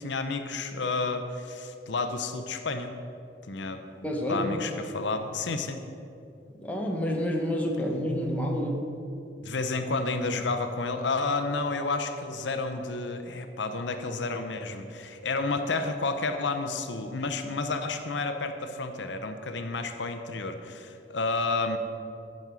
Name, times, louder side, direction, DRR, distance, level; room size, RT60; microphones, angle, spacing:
voice 1, 0.0-2.9 3.5-3.8 4.3-5.8 9.4-21.8, left 3 dB, 80° left, 7 dB, 0.7 m, -31 dB
voice 2, 4.0-4.5 6.6-8.9, equal, 10° left, 0 dB, 1.2 m, -28 dB
15.0 x 5.3 x 6.1 m, 2.6 s
head